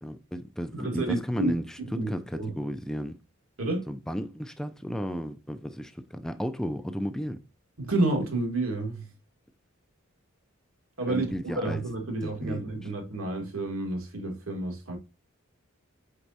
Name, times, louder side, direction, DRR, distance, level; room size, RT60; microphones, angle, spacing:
voice 1, 0.0-1.6 2.1-3.2 3.9-7.4 11.1-11.8 12.2-12.6, equal, 5° left, 0.3 m, -33 dB
voice 2, 0.7-1.5 1.8-2.5 3.6-3.9 7.8-9.1 11.0-15.0, right 2 dB, 85° right, 1.6 m, -30 dB
4.6 x 4.1 x 2.6 m
head